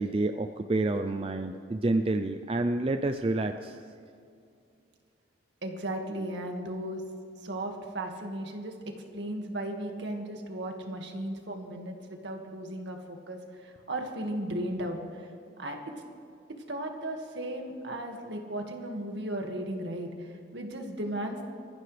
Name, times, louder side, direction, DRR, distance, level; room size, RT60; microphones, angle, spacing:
voice 1, 0.0-3.8, right 2 dB, 30° right, 7 dB, 0.4 m, -28 dB
voice 2, 5.6-7.0 7.4-8.7 9.1-15.3 15.6-15.8 16.7-21.4, right 1 dB, 70° right, 2 dB, 2.0 m, -36 dB
26.0 x 14.5 x 3.4 m, 2.4 s
head